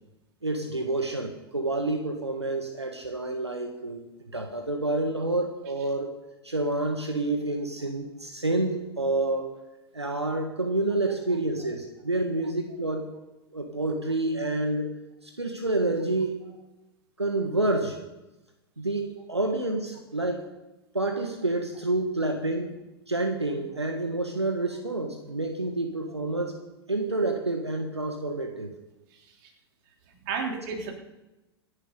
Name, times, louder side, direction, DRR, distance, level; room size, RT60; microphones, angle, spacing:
voice 1, 0.4-6.1 6.4-9.5 9.9-13.1 13.5-14.9 15.2-16.4 17.2-18.0 18.8-20.5 20.9-22.8 23.1-26.5 26.9-28.7, right 2 dB, 85° right, 4 dB, 1.6 m, -28 dB
voice 2, 29.1-29.5 30.1-30.9, right 5 dB, 50° right, 1 dB, 3.4 m, -34 dB
26.5 x 11.0 x 3.9 m, 1.0 s
figure-of-eight pair, 95°, 14 cm